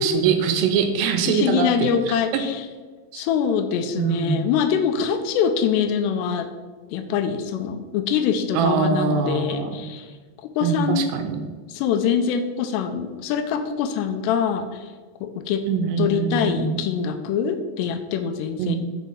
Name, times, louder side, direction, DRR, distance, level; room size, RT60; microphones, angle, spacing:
voice 1, 0.0-2.4 3.1-3.2 4.0-4.5 8.5-9.7 10.6-11.4 15.7-16.8 18.6-18.8, right 7 dB, 80° right, 6 dB, 2.7 m, -23 dB
voice 2, 1.3-2.7 3.1-6.5 6.9-11.0 11.7-14.9 15.2-15.6 16.0-18.8, left 7 dB, 80° left, 7 dB, 2.6 m, -24 dB
6.3 x 5.5 x 5.4 m, 1.4 s
omnidirectional pair, 5.0 m